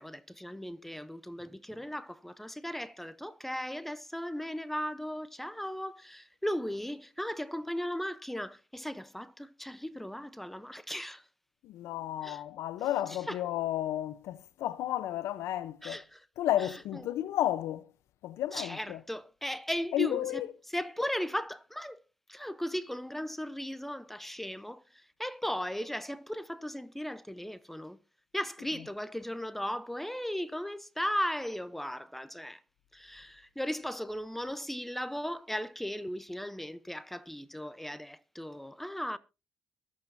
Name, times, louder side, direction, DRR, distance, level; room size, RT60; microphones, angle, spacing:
voice 1, 0.0-11.2 12.2-12.4 13.1-13.4 15.8-16.2 16.6-17.0 18.5-20.4 20.7-22.0 22.3-28.0 28.3-32.6 32.9-39.2, equal, 5° left, 0.8 m, -37 dB
voice 2, 11.6-16.0 16.4-17.9 18.2-19.0 19.9-20.5 28.6-28.8, left 13 dB, 85° left, 0.8 m, -32 dB
22.5 x 8.5 x 2.7 m
cardioid pair, 85°, 5 cm